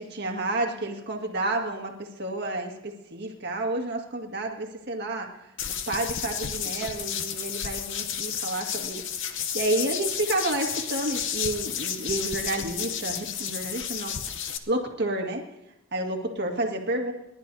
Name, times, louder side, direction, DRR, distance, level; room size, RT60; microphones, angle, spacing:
voice 1, 0.0-5.3 5.9-15.4 15.9-17.1, right 2 dB, 50° right, 1 dB, 1.9 m, -30 dB
sound 1, 5.6-14.6, left 8 dB, 55° left, 0.8 m, -32 dB
30.0 x 11.5 x 2.7 m, 0.91 s
head